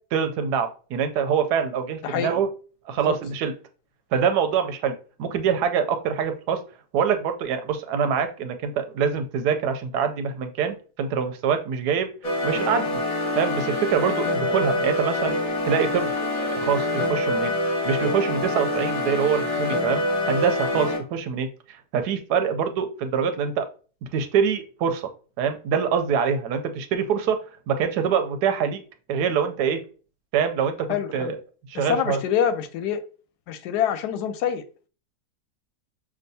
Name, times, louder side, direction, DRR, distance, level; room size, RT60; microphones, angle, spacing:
voice 1, 0.1-2.5 2.9-3.5 4.1-6.6 6.9-12.1 12.4-13.0 13.3-15.4 15.6-16.1 16.4-23.7 24.0-25.1 25.4-27.4 27.7-28.8 29.1-29.8 30.3-31.4 31.7-32.2, right 7 dB, 90° right, 1.2 m, -25 dB
voice 2, 2.0-2.4 3.0-3.2 30.9-31.3 31.7-33.0 33.5-34.6, left 8 dB, 90° left, 1.2 m, -26 dB
sound 1, 12.2-21.0, left 1 dB, 30° left, 0.7 m, -25 dB
6.1 x 2.3 x 2.7 m
omnidirectional pair, 1.7 m